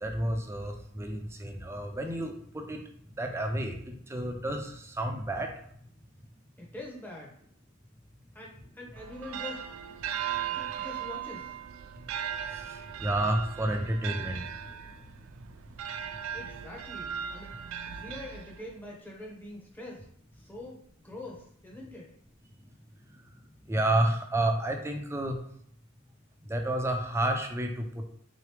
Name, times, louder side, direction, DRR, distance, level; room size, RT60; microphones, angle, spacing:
voice 1, 0.0-2.8 3.2-5.5 12.5-14.8 23.6-25.4 26.5-28.0, right 1 dB, 15° right, 3 dB, 0.5 m, -30 dB
voice 2, 6.6-7.4 8.3-9.6 10.5-11.6 16.3-17.5 17.9-20.1 20.3-20.8 21.0-22.1, left 1 dB, 10° left, -2 dB, 0.8 m, -44 dB
sound 1, 9.0-18.9, right 8 dB, 80° right, 0.3 m, -38 dB
3.7 x 3.0 x 3.3 m, 0.65 s
head